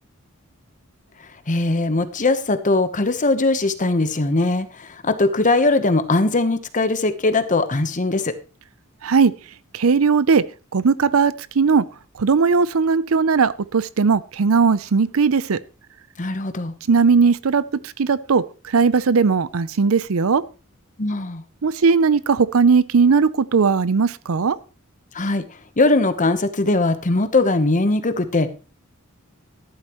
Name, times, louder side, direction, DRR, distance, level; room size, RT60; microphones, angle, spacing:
voice 1, 1.5-8.3 16.2-16.7 21.0-21.4 25.1-25.4 25.8-28.5, left 2 dB, 35° left, 10 dB, 1.0 m, -20 dB
voice 2, 9.7-10.4 10.7-11.8 12.2-15.6 16.9-17.6 18.0-20.4 21.6-24.6, right 5 dB, 70° right, 18 dB, 0.6 m, -18 dB
13.5 x 11.0 x 3.1 m, 0.33 s
head